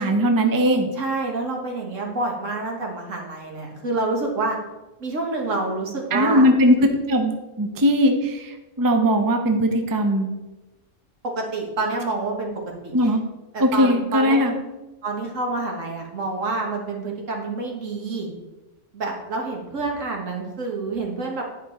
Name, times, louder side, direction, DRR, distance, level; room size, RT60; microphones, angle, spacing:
voice 1, 0.0-0.9 6.1-6.8 7.1-10.3 12.9-13.2 13.6-14.5, equal, 20° right, 5 dB, 0.6 m, -19 dB
voice 2, 0.9-4.6 5.0-6.4 11.2-12.5 12.8-12.9 13.5-14.4 15.0-18.3 18.9-21.4, right 3 dB, 75° right, 0 dB, 1.8 m, -27 dB
10.0 x 5.2 x 4.3 m, 1.1 s
omnidirectional pair, 1.3 m